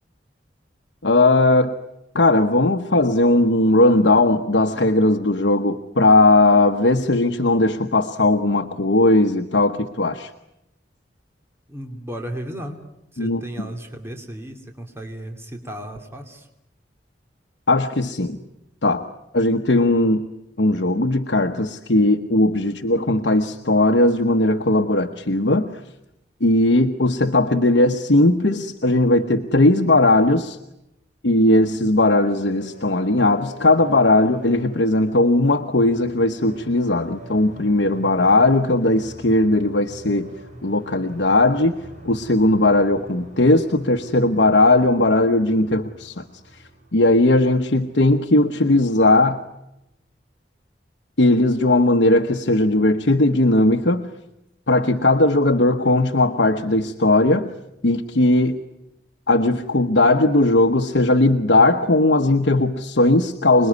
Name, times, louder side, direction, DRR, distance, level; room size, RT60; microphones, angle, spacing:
voice 1, 1.0-1.7 2.1-10.3 13.2-13.7 17.7-18.4 18.8-19.1 19.3-20.2 20.6-25.7 26.4-30.6 31.2-40.3 40.6-41.7 42.0-46.2 46.9-49.4 51.2-54.1 54.7-57.5 57.8-58.6 59.3-63.7, left 2 dB, 65° left, 4 dB, 1.1 m, -18 dB
voice 2, 11.7-12.8 13.1-16.5, right 1 dB, 15° right, 3 dB, 2.7 m, -34 dB
sound 1, 32.1-48.9, right 1 dB, 40° right, 6.5 m, -45 dB
27.0 x 21.0 x 9.6 m, 0.87 s
head